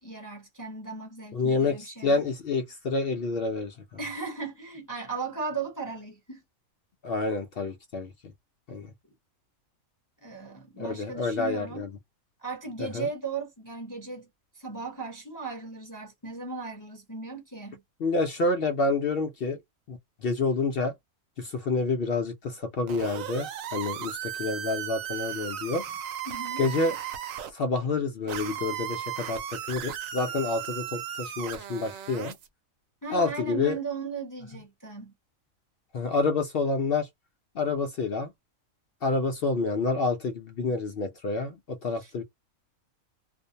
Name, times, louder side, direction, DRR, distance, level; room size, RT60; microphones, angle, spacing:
voice 1, 0.0-2.2 4.0-6.4 10.2-11.9 12.4-14.3 14.5-17.8 26.3-26.6 33.0-35.1 41.9-42.1, right 4 dB, 20° left, 0.6 m, -37 dB
voice 2, 1.3-3.8 7.0-8.1 8.7-8.9 10.8-11.9 12.8-13.1 18.0-19.6 19.9-20.9 21.4-25.8 26.6-27.0 27.5-32.4 33.1-33.8 35.9-37.1 37.6-38.3 39.0-42.2, left 3 dB, 65° left, 0.5 m, -28 dB
sound 1, 22.9-27.5 28.3-32.5, right 10 dB, 75° right, 1.0 m, -36 dB
2.5 x 2.0 x 2.6 m
omnidirectional pair, 1.5 m